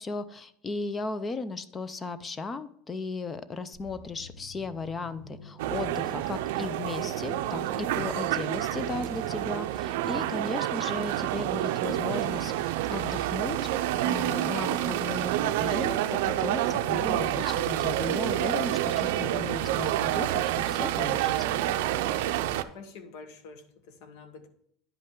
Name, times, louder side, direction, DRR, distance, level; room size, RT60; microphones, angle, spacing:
voice 1, 0.0-21.3, left 3 dB, 15° left, 14 dB, 0.4 m, -36 dB
sound 1, 3.7-13.4 13.6-13.9, left 1 dB, 85° left, 3.5 m, -50 dB
sound 2, 5.6-22.6, right 13 dB, 80° right, 0.4 m, -28 dB
voice 2, 22.4-24.5, left 4 dB, 60° left, 9 dB, 1.0 m, -47 dB
10.0 x 5.4 x 3.7 m, 0.69 s
cardioid pair, 175°, 0 cm